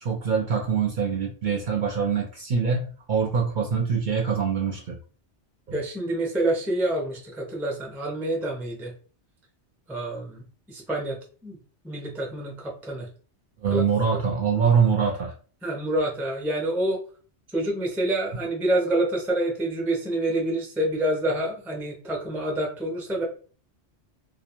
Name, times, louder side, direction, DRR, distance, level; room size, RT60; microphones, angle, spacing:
voice 1, 0.0-5.0 5.7-5.8 13.6-15.3, right 6 dB, 55° right, 0 dB, 0.6 m, -24 dB
voice 2, 5.7-8.9 9.9-11.2 11.4-11.6 11.8-13.1 13.7-13.8 15.6-17.0 17.5-23.2, right 1 dB, 5° right, -1 dB, 0.3 m, -27 dB
2.3 x 2.2 x 2.9 m, 0.40 s
omnidirectional pair, 1.2 m